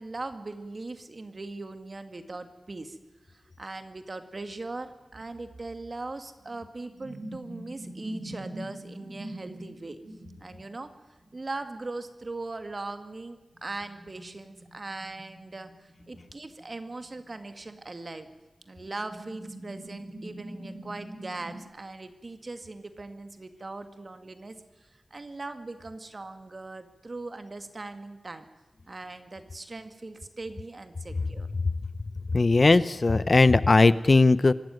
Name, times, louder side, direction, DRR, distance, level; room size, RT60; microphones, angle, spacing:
voice 1, 0.0-3.0 3.3-10.0 10.4-10.9 11.3-18.3 18.7-28.4 28.9-31.5, right 2 dB, 45° right, 8 dB, 1.9 m, -40 dB
sound 1, 4.6-4.7 5.1-10.7 11.2-11.3 13.5-17.7 18.2-18.3 18.8-21.6, right 1 dB, 60° right, 7.8 m, -44 dB
voice 2, 32.3-34.5, left 3 dB, 45° left, 16 dB, 0.6 m, -19 dB
24.5 x 13.0 x 9.2 m, 1.1 s
wide cardioid pair, 85°, 0 cm